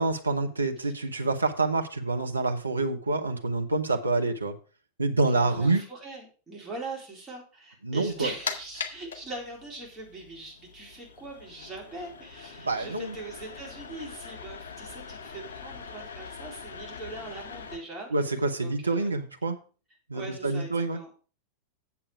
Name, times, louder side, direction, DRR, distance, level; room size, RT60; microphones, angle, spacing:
voice 1, 0.0-4.5 5.0-5.8 7.8-8.3 12.6-13.2 18.1-19.6 20.1-21.0, right 3 dB, 80° right, 6 dB, 1.0 m, -27 dB
voice 2, 5.2-18.1 18.6-19.1 20.1-21.1, right 2 dB, 15° right, -2 dB, 3.9 m, -41 dB
sound 1, 8.1-17.8, left 5 dB, 60° left, 1.3 m, -42 dB
8.5 x 7.3 x 4.8 m, 0.36 s
figure-of-eight pair, 90°, 0 cm